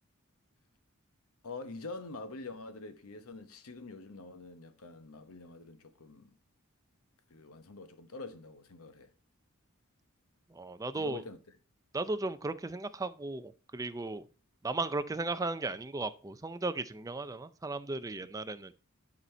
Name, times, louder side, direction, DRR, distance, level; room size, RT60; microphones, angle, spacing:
voice 1, 1.4-6.3 7.3-9.1 10.9-11.4 18.2-18.3, left 3 dB, 80° left, 0.9 m, -45 dB
voice 2, 10.5-11.2 11.9-14.3 14.6-18.7, right 3 dB, 15° right, 0.4 m, -36 dB
11.0 x 4.2 x 4.3 m
head